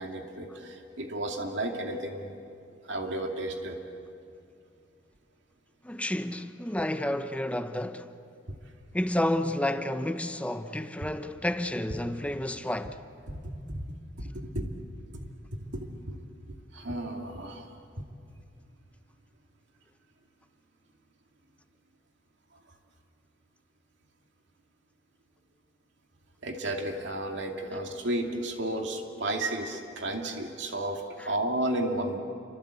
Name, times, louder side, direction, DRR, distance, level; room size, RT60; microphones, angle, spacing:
voice 1, 0.0-2.4 2.9-3.8 13.4-13.9 14.3-14.7 15.1-15.3 15.7-16.2 16.7-17.7 26.4-32.2, right 1 dB, 65° right, 2.5 m, -33 dB
voice 2, 5.8-8.1 8.9-13.0 31.2-31.3, left 1 dB, 5° left, 0.8 m, -30 dB
28.5 x 25.0 x 8.3 m
head